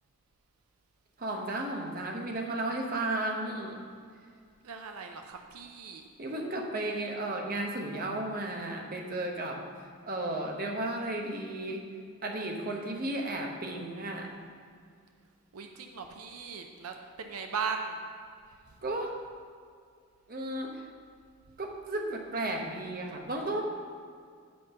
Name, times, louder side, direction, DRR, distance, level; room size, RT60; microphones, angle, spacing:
voice 1, 1.2-3.8 6.2-9.6 10.1-11.8 12.2-14.3 18.8-19.2 20.3-20.9 21.6-23.6, right 1 dB, 40° right, 1 dB, 0.9 m, -34 dB
voice 2, 4.6-6.0 15.5-18.0, right 5 dB, 80° right, 4 dB, 0.6 m, -38 dB
7.9 x 5.2 x 6.8 m, 2.1 s
head